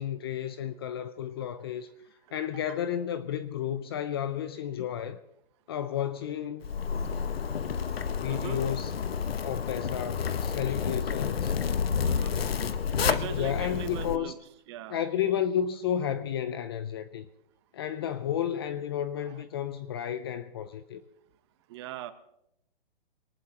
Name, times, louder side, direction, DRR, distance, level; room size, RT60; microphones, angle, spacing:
voice 1, 0.0-1.9 2.3-5.2 5.7-6.6 8.1-9.0 9.4-11.5 13.3-14.3 14.9-17.3 17.7-21.0, left 9 dB, 25° left, 0.5 m, -32 dB
Zipper (clothing), 6.6-14.2, left 6 dB, 85° left, 1.1 m, -30 dB
voice 2, 7.8-8.6 12.0-12.4 13.0-14.3 14.7-15.0 21.7-22.1, right 12 dB, 30° right, 1.0 m, -40 dB
24.0 x 19.0 x 2.9 m
hypercardioid pair, 155°, 29 cm